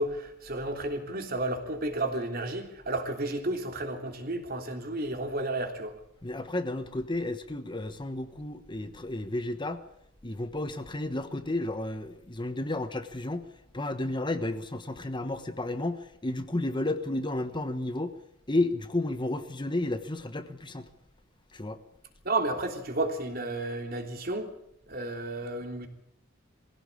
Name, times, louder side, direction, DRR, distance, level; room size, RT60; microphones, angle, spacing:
voice 1, 0.0-6.0 22.2-24.5 24.9-25.9, right 2 dB, 50° right, 4 dB, 3.4 m, -32 dB
voice 2, 6.2-9.8 10.2-18.2 18.5-20.9 21.5-21.8, left 2 dB, 25° left, 9 dB, 1.2 m, -32 dB
22.0 x 16.5 x 8.6 m, 0.74 s
head